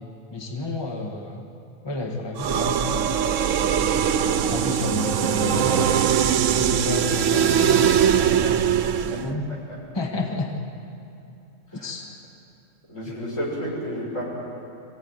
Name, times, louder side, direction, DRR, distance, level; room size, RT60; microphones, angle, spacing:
voice 1, 0.3-1.5 1.8-3.1 4.5-8.6 9.0-9.4 9.9-10.6 11.7-12.1 13.0-13.2, left 2 dB, 20° left, 1 dB, 1.6 m, -31 dB
sound 1, 2.4-9.3, right 8 dB, 85° right, 1.1 m, -21 dB
voice 2, 3.6-4.2 8.9-9.3 11.7-11.9 12.9-14.2, equal, 85° left, -4 dB, 6.9 m, -32 dB
23.5 x 16.0 x 9.5 m, 2.7 s
omnidirectional pair, 1.3 m